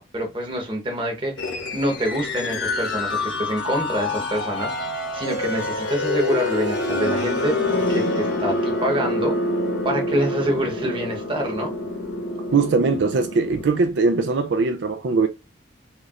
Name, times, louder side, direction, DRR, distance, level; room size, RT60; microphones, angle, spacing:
voice 1, 0.0-4.7 5.1-7.6 7.9-9.4 9.8-11.7, right 1 dB, 25° right, 1.0 m, -26 dB
sound 1, 1.4-13.7, left 2 dB, 70° left, 1.3 m, -26 dB
voice 2, 12.5-15.3, right 4 dB, 70° right, 0.4 m, -20 dB
4.4 x 3.1 x 2.4 m
head